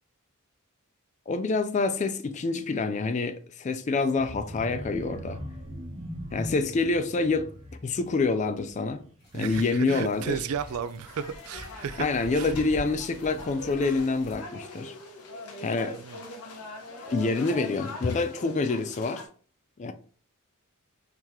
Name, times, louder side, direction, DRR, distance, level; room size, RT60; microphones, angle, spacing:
voice 1, 1.3-5.4 6.3-7.5 7.8-9.0 9.3-10.4 12.0-14.9 15.6-16.0 17.1-19.2 19.8-19.9, left 3 dB, 35° left, 0.3 m, -27 dB
sound 1, 4.1-9.9 10.3-10.5 10.9-11.0, equal, 25° right, 0.8 m, -41 dB
sound 2, 9.2-14.4, equal, 50° left, 2.2 m, -45 dB
voice 2, 9.3-12.1 12.3-12.5 15.9-16.2, right 7 dB, 70° right, 0.3 m, -34 dB
sound 3, 11.1-19.3, left 2 dB, 90° left, 0.9 m, -42 dB
4.7 x 2.9 x 3.5 m
head